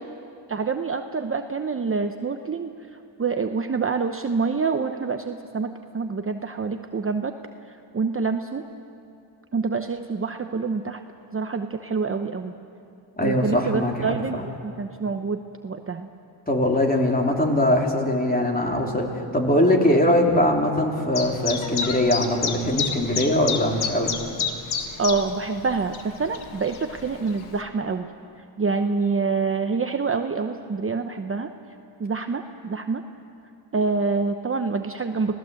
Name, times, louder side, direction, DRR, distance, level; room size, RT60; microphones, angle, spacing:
voice 1, 0.5-2.7 3.2-7.3 7.9-8.6 9.5-11.0 11.3-12.5 13.2-16.1 25.0-28.1 28.6-31.5 32.0-33.0 33.7-35.4, right 4 dB, 25° right, 6 dB, 0.8 m, -26 dB
voice 2, 13.2-14.4 16.5-19.1 19.3-24.1, left 1 dB, 15° left, 1 dB, 3.5 m, -21 dB
Chirp tweet, 21.1-27.6, left 6 dB, 75° left, 1.9 m, -31 dB
26.5 x 17.5 x 7.7 m, 2.5 s
cardioid pair, 85°, 49 cm